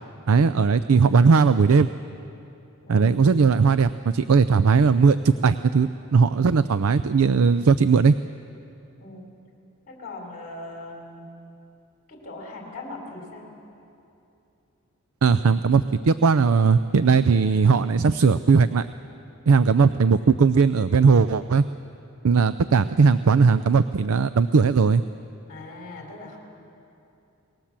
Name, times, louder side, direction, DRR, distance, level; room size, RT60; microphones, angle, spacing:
voice 1, 0.3-1.9 2.9-8.2 15.2-18.9 19.5-21.6 22.2-25.0, right 5 dB, 75° right, 13 dB, 0.5 m, -18 dB
voice 2, 2.8-3.3 9.0-9.2 9.9-11.3 12.1-13.5 22.6-22.9 25.5-26.4, left 2 dB, 40° left, -1 dB, 4.1 m, -40 dB
28.5 x 19.5 x 7.4 m, 2.8 s
head